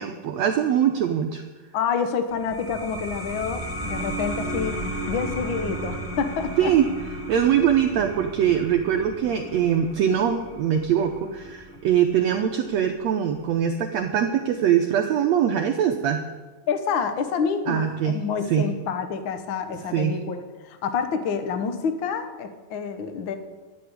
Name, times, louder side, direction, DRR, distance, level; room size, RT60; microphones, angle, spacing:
voice 1, 0.0-1.4 6.6-6.9 7.3-16.2 17.7-18.2 18.5-18.7 19.9-20.2, right 9 dB, 80° right, 5 dB, 1.6 m, -22 dB
voice 2, 1.7-4.8 5.1-6.7 16.7-23.4, left 6 dB, 90° left, 8 dB, 1.0 m, -28 dB
sound 1, 2.3-13.5, right 1 dB, 15° left, 0.4 m, -35 dB
12.5 x 8.5 x 9.8 m, 1.3 s
omnidirectional pair, 4.0 m